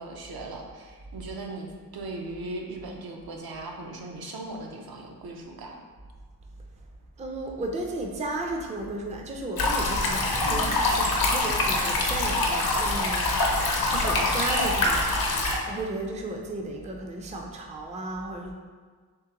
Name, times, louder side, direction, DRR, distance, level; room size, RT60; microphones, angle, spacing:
voice 1, 0.0-5.8, right 2 dB, 70° right, 1 dB, 0.6 m, -38 dB
voice 2, 7.2-13.5 13.9-15.1 15.6-18.5, right 2 dB, 20° right, 1 dB, 0.4 m, -34 dB
sound 1, 9.6-15.6, left 2 dB, 70° left, 0.7 m, -24 dB
3.7 x 3.2 x 2.8 m, 1.5 s
wide cardioid pair, 95°, 38 cm